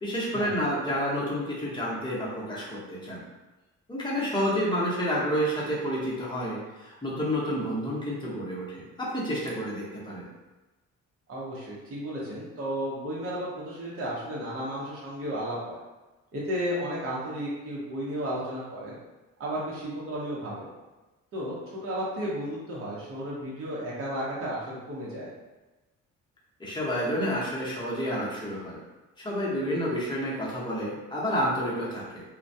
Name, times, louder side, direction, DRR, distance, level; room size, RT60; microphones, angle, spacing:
voice 1, 0.0-3.2 3.9-10.2 26.6-28.8 29.2-32.2, equal, 15° left, -6 dB, 0.8 m, -29 dB
voice 2, 11.3-15.8 16.3-19.0 19.4-20.6 21.3-21.6 21.8-25.3, equal, 45° right, -6 dB, 0.8 m, -33 dB
2.2 x 2.1 x 2.6 m, 1.1 s
cardioid pair, 90°, 30 cm